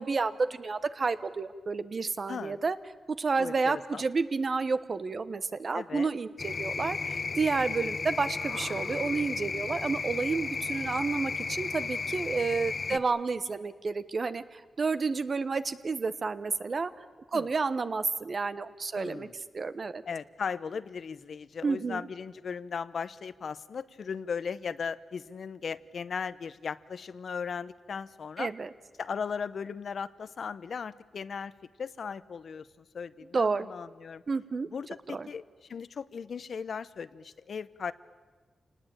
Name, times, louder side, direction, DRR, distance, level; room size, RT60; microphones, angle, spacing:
voice 1, 0.0-2.8 3.1-16.9 17.3-19.3 19.5-20.0 21.6-22.0 28.4-28.7 33.3-33.7 34.3-34.7 35.1-35.3, right 4 dB, 45° right, 12 dB, 1.1 m, -30 dB
voice 2, 2.3-2.6 3.4-4.0 5.7-6.1 12.9-13.0 17.3-17.5 19.0-19.3 20.1-28.5 29.0-31.5 31.8-34.2 34.7-37.9, left 6 dB, 70° left, 15 dB, 0.8 m, -37 dB
sound 1, 6.4-13.0, left 4 dB, 50° left, 1.1 m, -34 dB
27.0 x 19.0 x 8.8 m, 1.4 s
cardioid pair, 90°, 0 cm